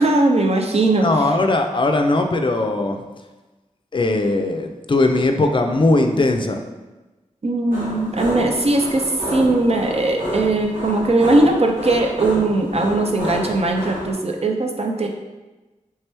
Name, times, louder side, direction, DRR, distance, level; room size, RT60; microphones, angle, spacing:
voice 1, 0.0-1.1 7.4-15.1, right 2 dB, 50° right, 2 dB, 0.5 m, -19 dB
voice 2, 1.0-3.0 3.9-6.6, left 2 dB, 35° left, 5 dB, 0.4 m, -19 dB
sound 1, 7.7-14.1, equal, 90° right, 1.2 m, -29 dB
3.3 x 3.0 x 3.3 m, 1.1 s
cardioid pair, 45°, 14 cm